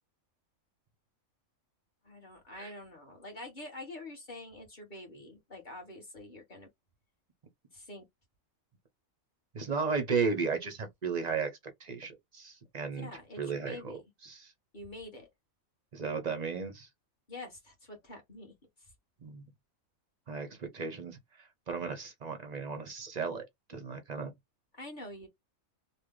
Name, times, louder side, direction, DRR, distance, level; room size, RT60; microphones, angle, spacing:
voice 1, 2.0-6.7 7.7-8.0 13.0-14.0 14.7-15.3 17.3-18.5 24.7-25.3, left 2 dB, 35° left, 1.6 m, -46 dB
voice 2, 9.5-11.5 11.8-13.1 13.4-14.0 14.2-14.5 15.9-16.9 19.2-19.4 20.3-21.2 21.7-24.3, right 5 dB, 45° right, 0.6 m, -34 dB
3.3 x 2.1 x 3.7 m
omnidirectional pair, 1.4 m